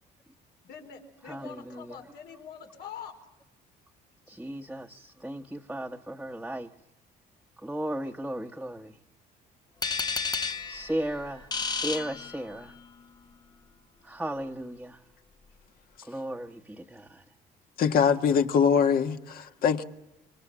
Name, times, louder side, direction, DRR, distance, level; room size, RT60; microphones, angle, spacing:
voice 1, 0.6-3.1, left 7 dB, 80° left, 4.5 m, -44 dB
voice 2, 1.3-1.9 4.3-6.7 7.6-8.9 10.7-12.7 14.0-15.0 16.1-17.2, right 1 dB, 5° right, 1.1 m, -35 dB
sound 1, 9.8-12.9, left 5 dB, 25° left, 0.9 m, -32 dB
voice 3, 17.8-19.8, left 6 dB, 60° left, 1.6 m, -23 dB
26.0 x 24.5 x 7.5 m
cardioid pair, 110°, 17 cm